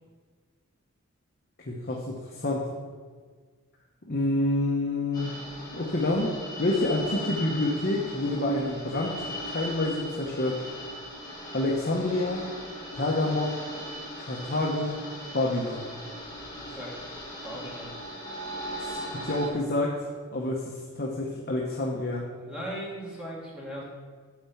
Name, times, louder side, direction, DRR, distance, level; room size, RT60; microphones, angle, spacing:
voice 1, 1.7-2.7 4.1-5.4 5.7-6.3 6.6-9.2 9.5-10.6 11.5-12.4 12.9-13.6 14.2-15.0 15.3-15.8 18.8-19.9 20.3-22.3, left 2 dB, 45° left, -2 dB, 0.9 m, -28 dB
sound 1, 5.1-19.5, equal, 15° left, 1.8 m, -38 dB
voice 2, 16.6-16.9 17.4-17.9 22.4-23.8, equal, 5° right, -6 dB, 2.2 m, -38 dB
9.2 x 4.3 x 7.1 m, 1.5 s
head